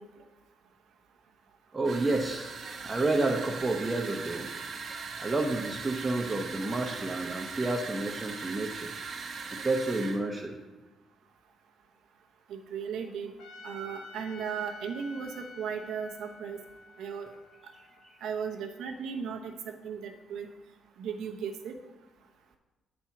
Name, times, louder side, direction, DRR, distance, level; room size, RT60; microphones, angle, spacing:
voice 1, 1.7-2.5 2.8-4.5 5.2-8.9 9.6-10.5 17.7-18.2, right 2 dB, 25° right, 0 dB, 0.8 m, -30 dB
sound 1, 1.8-10.2, right 5 dB, 55° right, 0.9 m, -40 dB
voice 2, 12.5-13.3 13.6-16.6 17.0-17.3 18.2-19.5 19.8-20.5 21.0-21.7, right 6 dB, 80° right, 2 dB, 0.9 m, -36 dB
Trumpet, 13.4-18.6, left 2 dB, 85° left, 0.8 m, -49 dB
8.0 x 4.4 x 5.8 m, 1.2 s
cardioid pair, 90°, 0 cm